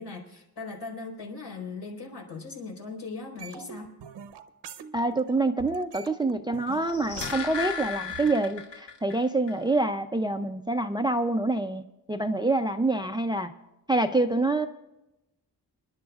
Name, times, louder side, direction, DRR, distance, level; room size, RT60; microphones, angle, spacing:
voice 1, 0.0-3.9, left 4 dB, 70° left, 0 dB, 4.2 m, -39 dB
sound 1, 3.4-5.3 5.6-8.4, right 7 dB, 85° right, 0.9 m, -44 dB
voice 2, 4.9-13.5 13.9-14.7, right 2 dB, 10° right, 8 dB, 0.4 m, -26 dB
sound 2, 6.7-9.2 9.5-9.6, left 6 dB, 90° left, 2.0 m, -35 dB
27.5 x 11.5 x 2.4 m, 0.97 s
wide cardioid pair, 135°, 41 cm